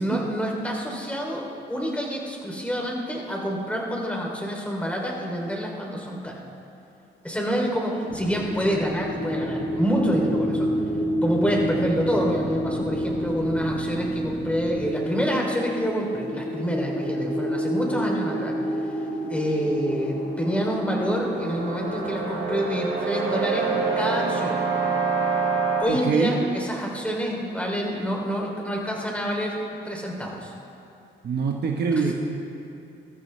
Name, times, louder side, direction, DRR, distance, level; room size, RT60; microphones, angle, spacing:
voice 1, 0.0-6.4 7.2-10.7 11.2-18.9 19.3-24.6 25.8-30.5 32.0-32.1, equal, 5° left, -1 dB, 3.2 m, -27 dB
sound 1, 8.0-23.0, equal, 55° left, 3.9 m, -29 dB
sound 2, 8.1-14.9, right 2 dB, 20° right, 1.3 m, -37 dB
trombone crescendo, 19.9-25.8, right 5 dB, 75° right, 3.6 m, -27 dB
voice 2, 25.9-26.3 31.2-32.1, right 5 dB, 55° right, 0 dB, 1.3 m, -24 dB
23.0 x 13.5 x 3.3 m, 2.7 s
cardioid pair, 90°, 20 cm